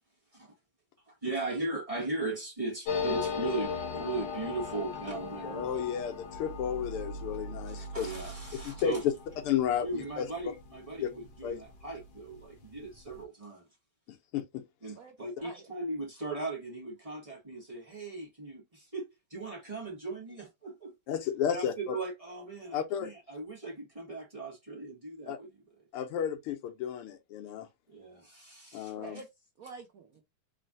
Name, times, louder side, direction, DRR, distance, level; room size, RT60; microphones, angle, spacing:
voice 1, 1.0-5.7 7.7-9.0 9.8-13.7 14.8-20.9 21.5-25.6 27.9-28.9, right 3 dB, 20° right, 1.3 m, -38 dB
sound 1, 2.9-12.0 12.3-12.4 12.6-13.2, left 5 dB, 55° left, 1.7 m, -38 dB
voice 2, 5.4-8.1 8.5-9.0 9.5-10.3 11.0-11.1 11.4-11.6 14.1-14.6 21.1-22.0 22.7-23.1 25.3-25.4 25.9-27.7 28.7-29.2, left 9 dB, 80° left, 1.7 m, -33 dB
voice 3, 15.0-15.7 28.9-30.2, right 4 dB, 70° right, 0.8 m, -48 dB
4.1 x 3.2 x 2.6 m
omnidirectional pair, 2.4 m